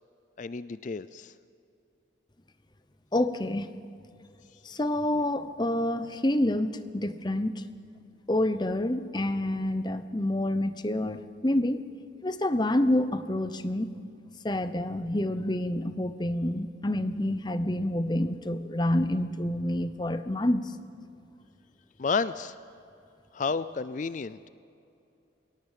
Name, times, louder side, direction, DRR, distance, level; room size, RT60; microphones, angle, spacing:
voice 1, 0.4-1.3 22.0-22.5 23.3-24.4, left 4 dB, 40° left, 15 dB, 0.4 m, -31 dB
voice 2, 3.1-3.7 4.6-7.6 8.3-11.8 12.2-13.9 14.4-20.7, left 1 dB, 20° left, 11 dB, 0.8 m, -28 dB
21.5 x 17.5 x 7.5 m, 2.7 s
head